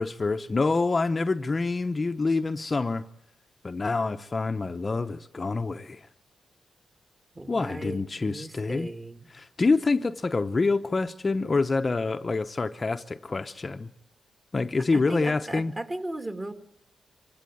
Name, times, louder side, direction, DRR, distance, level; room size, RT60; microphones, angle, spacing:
voice 1, 0.0-3.0 3.6-6.1 7.5-8.9 9.3-13.9 14.5-15.7, left 3 dB, 35° left, 0.8 m, -26 dB
voice 2, 7.3-9.3 14.9-16.5, right 1 dB, 20° right, 2.5 m, -36 dB
25.5 x 16.0 x 9.4 m
cardioid pair, 80°, 0 cm